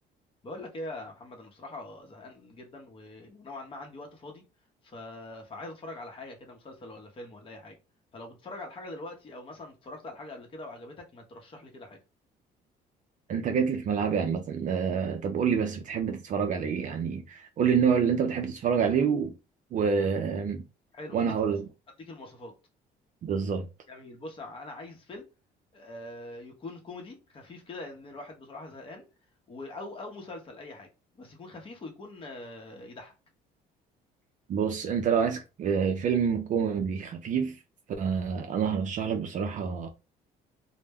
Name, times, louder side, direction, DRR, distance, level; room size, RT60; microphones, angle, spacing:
voice 1, 0.4-4.4 4.8-7.8 8.1-12.0 20.9-21.5 22.0-22.5 23.9-25.3 25.7-29.0 29.5-30.9 31.1-33.1, left 2 dB, 30° left, 0.7 m, -43 dB
voice 2, 13.3-19.3 19.7-20.6 21.1-21.7 23.2-23.7 34.5-37.6 38.0-39.9, right 6 dB, 50° right, 0.4 m, -27 dB
2.1 x 2.0 x 3.4 m
cardioid pair, 110°, 17 cm